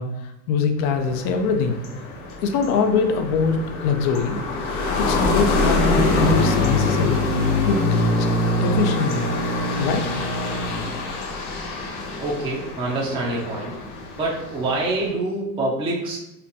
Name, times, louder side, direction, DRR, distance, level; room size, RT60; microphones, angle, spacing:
voice 1, 0.0-1.8 2.4-3.6 3.8-4.4 5.0-7.2 7.6-8.3 8.6-9.3 9.8-10.0, left 5 dB, 35° left, 6 dB, 0.5 m, -23 dB
sound 1, 0.8-15.1, left 2 dB, 60° left, 1.0 m, -24 dB
voice 2, 12.2-13.7 14.2-16.2, right 2 dB, 10° right, -5 dB, 0.6 m, -26 dB
4.3 x 2.5 x 2.6 m, 0.89 s
hypercardioid pair, 110°, 48 cm